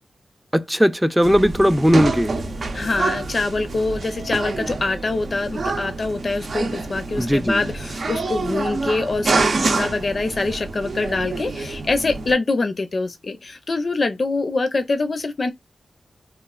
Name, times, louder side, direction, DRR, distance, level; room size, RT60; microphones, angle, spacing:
voice 1, 0.5-2.3 7.2-7.6, equal, 5° right, 0.4 m, -18 dB
sound 1, 1.2-12.3, right 3 dB, 70° right, 0.6 m, -27 dB
voice 2, 2.7-15.5, left 3 dB, 55° left, 0.5 m, -24 dB
3.1 x 2.3 x 2.2 m
cardioid pair, 55°, 0 cm